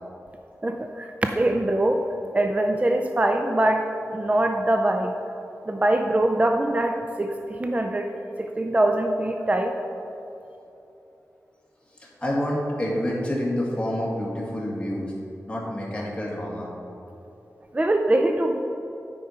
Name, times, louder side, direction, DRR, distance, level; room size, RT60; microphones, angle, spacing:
voice 1, 0.6-2.0 2.3-3.9 4.1-5.1 5.7-8.1 8.4-9.7 17.7-18.7, right 1 dB, 25° right, 4 dB, 0.4 m, -23 dB
voice 2, 11.9-15.1 15.5-16.7, left 1 dB, 20° left, -4 dB, 1.9 m, -28 dB
9.1 x 5.4 x 4.4 m, 3.0 s
wide cardioid pair, 90°, 6 cm